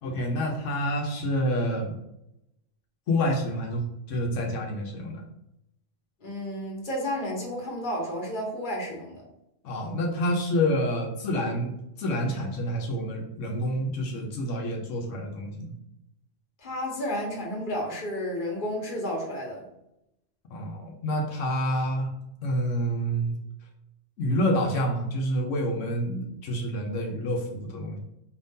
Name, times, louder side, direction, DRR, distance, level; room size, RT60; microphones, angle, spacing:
voice 1, 0.0-2.0 3.1-3.8 4.1-5.2 9.6-15.7 20.5-22.1 22.4-23.3 24.2-28.0, equal, 85° left, 1 dB, 1.1 m, -28 dB
voice 2, 6.2-9.2 16.6-19.6, equal, 45° left, -1 dB, 1.3 m, -32 dB
4.9 x 2.7 x 3.6 m, 0.85 s
omnidirectional pair, 1.2 m